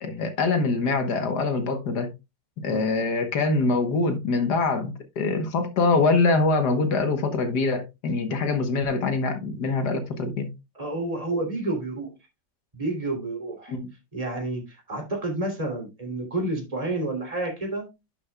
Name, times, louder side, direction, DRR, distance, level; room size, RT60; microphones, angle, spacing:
voice 1, 0.0-2.1 2.6-10.5 13.7-13.9, left 3 dB, 65° left, 1.7 m, -24 dB
voice 2, 10.7-12.1 12.7-13.7 14.1-17.9, right 2 dB, 20° right, 3.2 m, -30 dB
11.0 x 7.0 x 2.3 m
omnidirectional pair, 1.9 m